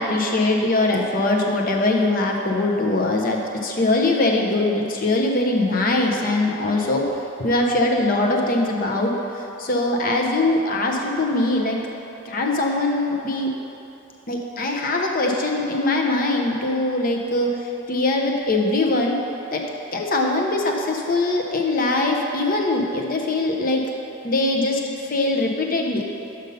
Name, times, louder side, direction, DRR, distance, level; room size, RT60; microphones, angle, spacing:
voice 1, 0.0-7.0 7.4-11.8 12.3-13.6 14.3-19.2 19.5-19.6 19.9-23.9 24.2-24.8 25.1-26.0, left 2 dB, 40° left, 1 dB, 0.6 m, -22 dB
5.4 x 5.3 x 5.3 m, 3.0 s
head